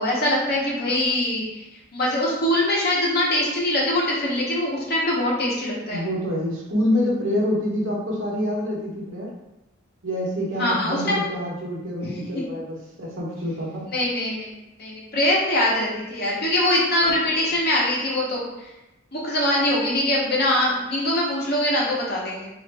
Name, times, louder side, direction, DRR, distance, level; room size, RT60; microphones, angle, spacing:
voice 1, 0.0-1.6 1.9-6.0 10.6-11.2 13.9-18.4 19.1-22.5, left 1 dB, 50° left, -4 dB, 0.9 m, -23 dB
voice 2, 5.9-9.3 10.0-13.8, left 1 dB, 70° right, -3 dB, 0.9 m, -26 dB
3.1 x 2.5 x 3.3 m, 0.95 s
head